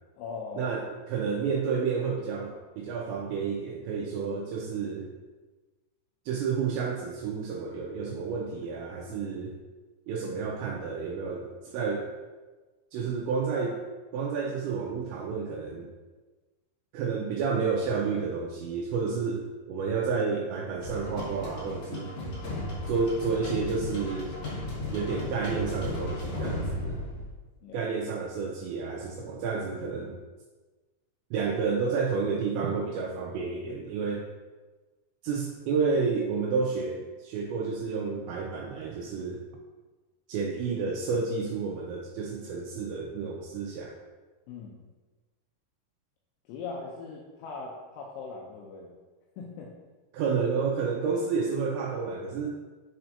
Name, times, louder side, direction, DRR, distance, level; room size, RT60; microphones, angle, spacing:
voice 1, 0.2-0.8 27.6-27.9 44.5-44.8 46.5-48.9 49.4-49.7, left 4 dB, 80° left, -3 dB, 2.9 m, -40 dB
voice 2, 1.1-5.1 6.3-9.6 10.1-12.1 12.9-13.8 14.1-15.9 16.9-19.4 19.7-22.1 22.9-24.3 24.9-27.0 27.7-30.1 31.3-34.2 35.2-39.4 40.3-44.0 50.1-52.5, right 5 dB, 85° right, 0 dB, 2.5 m, -30 dB
sound 1, 20.8-27.3, left 1 dB, 65° left, 1.6 m, -35 dB
10.0 x 4.4 x 2.7 m, 1.3 s
omnidirectional pair, 5.7 m